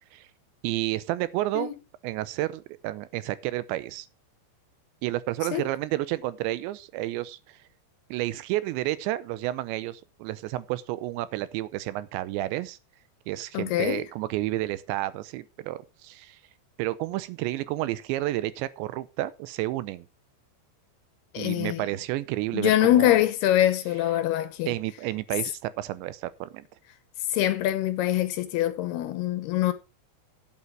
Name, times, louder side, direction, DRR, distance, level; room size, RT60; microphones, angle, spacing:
voice 1, 0.6-1.7 2.0-4.1 5.0-7.6 8.1-12.8 13.3-16.4 16.8-20.1 21.4-23.2 24.7-26.7, right 16 dB, 85° right, 3.0 m, -31 dB
voice 2, 13.5-14.0 21.3-21.8 22.5-24.7 27.3-29.7, left 13 dB, 75° left, 2.6 m, -24 dB
12.0 x 8.6 x 4.6 m
omnidirectional pair, 5.2 m